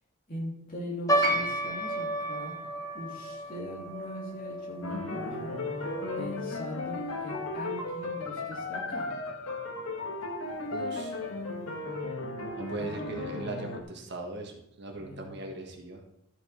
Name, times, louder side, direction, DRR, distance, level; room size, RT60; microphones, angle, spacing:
voice 1, 0.3-2.5 2.9-5.5 6.2-9.1 12.7-12.9 15.0-15.3, equal, 40° left, -2 dB, 2.9 m, -40 dB
sound 1, 1.1-7.6 7.8-7.9 8.7-9.0 9.6-9.7 10.0-10.2, equal, 15° left, 1.1 m, -34 dB
sound 2, 1.2-5.4 6.6-6.7, right 3 dB, 20° right, 5.1 m, -38 dB
sound 3, 4.8-13.8, left 2 dB, 75° left, 1.6 m, -35 dB
voice 2, 10.7-11.2 12.6-16.0, right 2 dB, 50° right, 2 dB, 1.5 m, -39 dB
12.5 x 8.1 x 4.4 m, 0.84 s
head